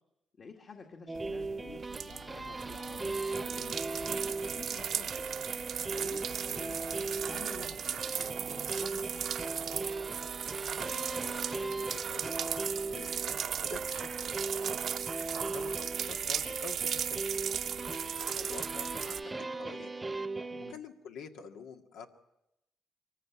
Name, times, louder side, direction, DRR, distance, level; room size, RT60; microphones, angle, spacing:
voice 1, 0.4-5.1 5.9-9.4 20.5-20.8, left 5 dB, 45° left, 3 dB, 2.0 m, -51 dB
sound 1, 1.1-20.7, right 3 dB, 20° right, 0.9 m, -38 dB
sound 2, 1.2-19.2, right 8 dB, 65° right, 0.8 m, -37 dB
voice 2, 10.8-13.2 13.6-14.5 15.1-17.4 18.2-20.0 20.7-22.1, left 5 dB, 90° left, 4 dB, 1.9 m, -48 dB
23.5 x 14.5 x 9.4 m, 0.88 s
cardioid pair, 90°, 0 cm